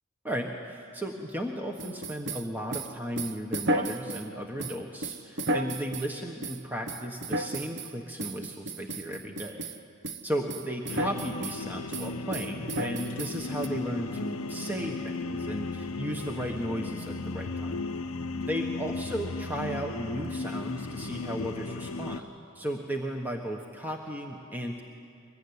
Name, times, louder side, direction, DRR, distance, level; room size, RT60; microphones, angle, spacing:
voice 1, 0.2-9.7 10.2-17.8 18.5-22.3 22.5-24.8, equal, 10° right, 1 dB, 1.3 m, -35 dB
sound 1, 1.8-4.3 4.6-6.1 6.4-6.6 6.9-7.9 8.2-9.8 10.0-10.2 10.5-11.6 11.9-13.7, right 2 dB, 55° right, 1.1 m, -33 dB
sound 2, 10.9-22.2, left 3 dB, 90° left, 0.8 m, -35 dB
24.0 x 22.0 x 9.7 m, 2.5 s
head